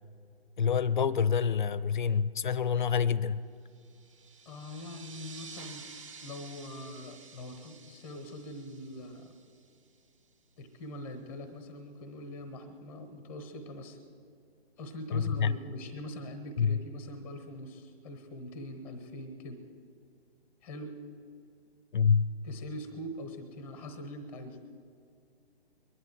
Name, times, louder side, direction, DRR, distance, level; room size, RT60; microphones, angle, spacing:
voice 1, 0.6-3.4 15.1-15.5 16.6-16.8 21.9-22.3, left 6 dB, 50° left, 0.5 m, -27 dB
sound 1, 3.8-10.0, right 5 dB, 30° right, 0.7 m, -51 dB
voice 2, 4.5-5.9 6.2-9.3 10.6-14.0 14.8-19.6 20.6-21.0 22.4-24.6, left 1 dB, 5° left, 0.6 m, -43 dB
22.5 x 11.0 x 4.6 m
figure-of-eight pair, 145°, 32 cm